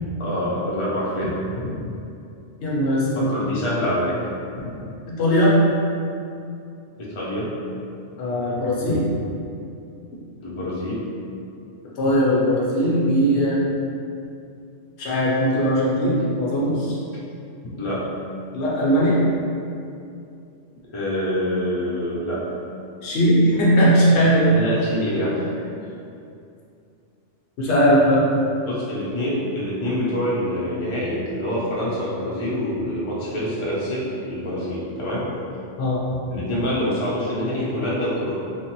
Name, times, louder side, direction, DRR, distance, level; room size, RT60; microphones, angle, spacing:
voice 1, 0.2-1.4 3.1-4.2 7.0-7.5 10.4-11.0 17.8-18.0 20.9-22.4 24.5-25.5 28.6-35.3 36.3-38.3, equal, 35° left, -8 dB, 0.5 m, -26 dB
voice 2, 2.6-3.3 5.1-5.6 8.2-9.1 12.0-13.6 15.0-17.0 18.5-19.2 23.0-24.5 27.6-28.3 35.8-36.0, equal, 70° left, -6 dB, 0.9 m, -19 dB
3.2 x 2.1 x 2.9 m, 2.6 s
omnidirectional pair, 1.3 m